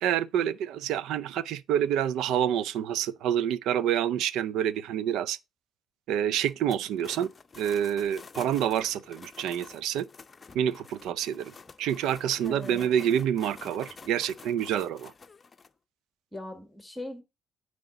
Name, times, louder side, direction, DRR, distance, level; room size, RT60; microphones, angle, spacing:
voice 1, 0.0-5.4 6.1-7.3 7.6-10.1 10.5-11.5 11.8-15.1, right 10 dB, 85° right, 0.4 m, -27 dB
sound 1, 6.4-15.7, left 4 dB, 30° left, 0.7 m, -49 dB
voice 2, 12.4-12.9 16.3-17.2, left 1 dB, 10° left, 1.6 m, -40 dB
9.1 x 4.8 x 3.8 m
cardioid pair, 95°, 0 cm